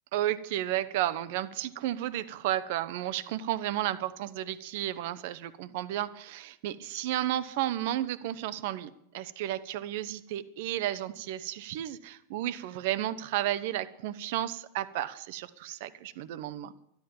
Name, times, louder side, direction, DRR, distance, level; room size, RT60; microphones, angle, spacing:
voice 1, 0.1-16.7, right 13 dB, 50° right, 16 dB, 0.7 m, -33 dB
12.5 x 10.5 x 7.2 m, 0.76 s
figure-of-eight pair, 90°, 0 cm